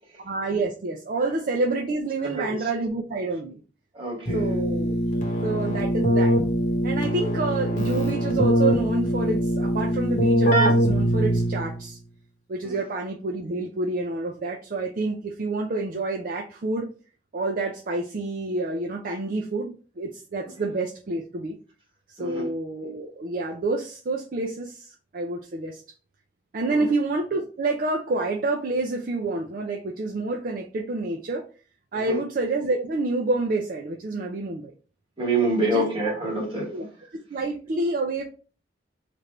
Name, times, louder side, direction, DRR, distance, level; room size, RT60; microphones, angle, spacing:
voice 1, 0.2-3.6 4.3-5.0 5.4-6.4 6.8-12.0 12.5-16.9 17.3-21.5 22.2-25.8 26.5-31.4 31.9-34.7 35.6-35.8 36.7-36.9 37.3-38.2, right 3 dB, 50° right, 0.4 m, -28 dB
voice 2, 2.2-2.6 3.9-4.5 12.6-12.8 22.2-22.5 26.7-26.8 31.9-32.2 35.2-36.7, right 2 dB, 30° right, 1.8 m, -27 dB
Keyboard (musical), 4.3-11.8, equal, 45° left, 0.9 m, -22 dB
3.3 x 2.5 x 4.2 m
head